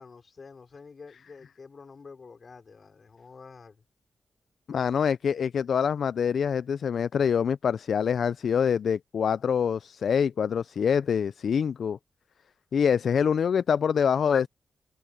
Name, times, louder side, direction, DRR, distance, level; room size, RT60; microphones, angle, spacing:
voice 1, 0.0-3.8, left 4 dB, 45° left, 4.3 m, -48 dB
voice 2, 4.7-12.0 12.7-14.5, left 7 dB, 70° left, 0.3 m, -25 dB
wide cardioid pair, 105°, 0 cm